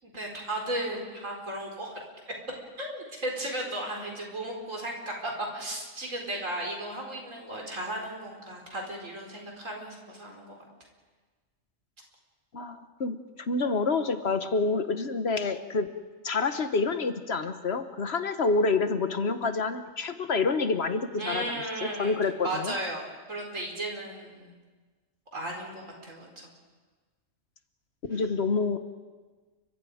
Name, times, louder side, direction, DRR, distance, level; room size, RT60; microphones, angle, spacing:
voice 1, 0.0-1.9 2.2-2.3 2.8-10.5 21.2-24.5 25.3-26.5 28.1-28.2, right 1 dB, 75° right, 0 dB, 4.9 m, -35 dB
voice 2, 12.5-15.9 16.2-21.4 21.8-22.7 28.1-28.8, left 4 dB, 55° left, 9 dB, 1.3 m, -28 dB
30.0 x 24.5 x 5.0 m, 1.4 s
omnidirectional pair, 1.3 m